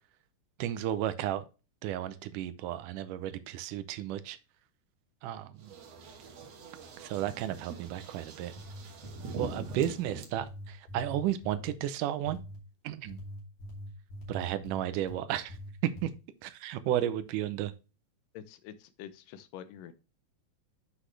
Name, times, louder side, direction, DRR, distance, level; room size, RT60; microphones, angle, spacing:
voice 1, 0.6-1.4 1.8-4.4 5.2-5.7 7.0-8.5 9.4-12.4 12.8-13.2 14.3-15.6 16.0-16.1 16.4-17.7, right 12 dB, 80° right, 2.1 m, -33 dB
sound 1, 5.6-10.3, right 4 dB, 60° right, 2.1 m, -44 dB
sound 2, 8.4-9.8 10.4-11.8 12.2-12.6 13.1-15.2 15.5-16.1, equal, 55° left, 3.8 m, -44 dB
voice 2, 18.3-19.9, left 10 dB, 85° left, 2.4 m, -46 dB
8.1 x 5.9 x 3.2 m
omnidirectional pair, 3.8 m